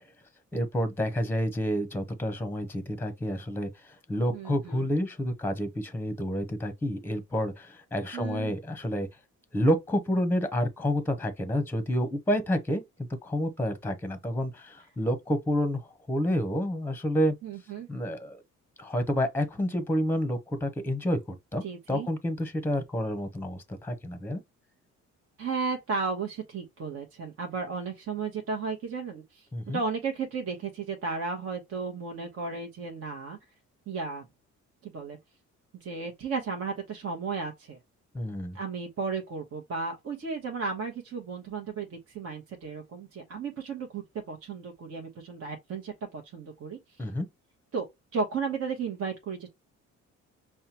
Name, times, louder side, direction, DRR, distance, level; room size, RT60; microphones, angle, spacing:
voice 1, 0.5-9.1 9.5-12.8 13.2-17.3 17.9-18.4 18.8-24.4 29.5-29.8 38.1-38.6 47.0-47.3, equal, 5° left, 0.8 m, -29 dB
voice 2, 4.3-4.9 8.1-8.5 17.4-17.9 21.6-22.1 25.4-33.4 33.9-34.2 34.8-35.2 35.8-37.8 38.5-46.8 47.7-49.5, right 5 dB, 50° right, 1.1 m, -34 dB
5.5 x 2.3 x 2.9 m
cardioid pair, 90°, 30 cm